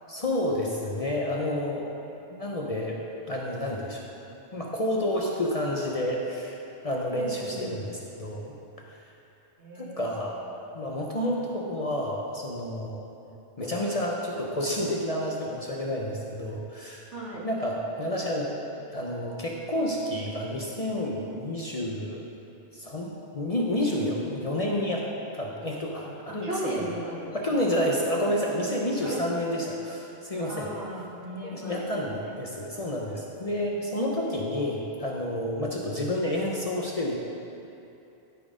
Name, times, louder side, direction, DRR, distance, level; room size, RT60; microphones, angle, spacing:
voice 1, 0.1-1.8 2.3-3.0 3.3-4.0 4.5-8.5 9.8-10.4 10.7-13.1 13.6-17.1 17.4-18.5 18.9-22.3 22.7-25.1 25.3-26.5 26.8-26.9 27.3-30.7 31.4-37.2, left 1 dB, 40° left, -2 dB, 0.7 m, -29 dB
voice 2, 7.1-7.8 9.6-10.0 17.1-17.5 26.3-27.2 29.0-29.2 30.5-31.8, right 1 dB, 75° right, -7 dB, 2.1 m, -36 dB
12.0 x 4.4 x 5.0 m, 2.8 s
omnidirectional pair, 1.2 m